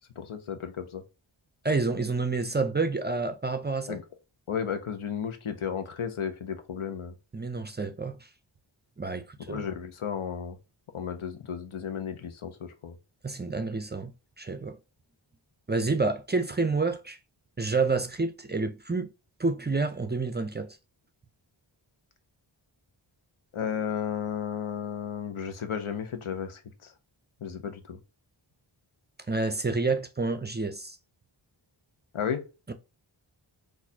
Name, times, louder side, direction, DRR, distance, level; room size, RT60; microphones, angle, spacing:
voice 1, 0.2-1.0 3.9-4.0 4.5-7.1 9.5-10.6 10.9-12.9 23.5-26.9 27.4-28.0 32.1-32.4, left 7 dB, 90° left, 0.8 m, -33 dB
voice 2, 1.6-4.0 7.3-8.2 9.0-9.7 13.2-14.1 14.4-14.8 15.7-17.2 17.6-19.1 19.4-20.8 29.3-31.0 32.7-32.8, right 3 dB, 25° right, 0.4 m, -28 dB
4.0 x 2.6 x 2.7 m
wide cardioid pair, 75°, 48 cm